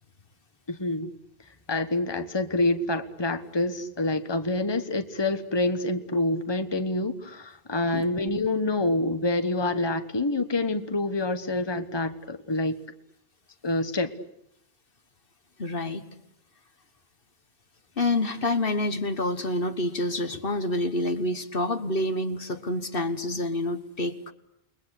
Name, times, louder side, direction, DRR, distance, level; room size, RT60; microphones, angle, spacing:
voice 1, 0.7-1.1 1.7-12.8 13.6-14.1, left 2 dB, 25° left, 9 dB, 1.4 m, -27 dB
voice 2, 15.6-16.0 18.0-24.3, left 2 dB, 60° left, 10 dB, 1.6 m, -28 dB
29.5 x 21.5 x 8.3 m, 0.77 s
omnidirectional pair, 1.0 m